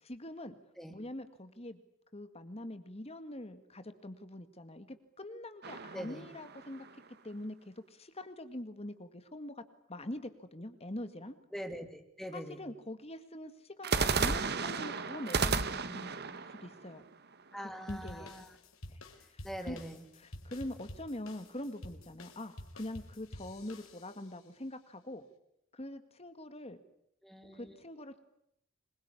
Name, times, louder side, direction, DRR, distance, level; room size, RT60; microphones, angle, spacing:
voice 1, 0.0-0.5 0.9-1.8 2.1-6.9 7.2-9.6 9.9-11.3 12.3-17.0 17.6-18.3 18.9-19.0 19.3-19.8 20.2-25.2 25.7-26.8 27.5-28.2, left 1 dB, 30° left, 10 dB, 1.9 m, -44 dB
sound 1, 5.6-7.1 13.8-17.8, right 4 dB, 50° right, 1.5 m, -34 dB
voice 2, 5.9-6.2 11.5-12.6 17.5-18.4 19.4-20.0 27.2-27.8, equal, ahead, 6 dB, 3.1 m, -43 dB
sound 2, 17.9-24.4, left 1 dB, 80° left, 4.3 m, -50 dB
26.5 x 22.5 x 9.8 m, 0.74 s
head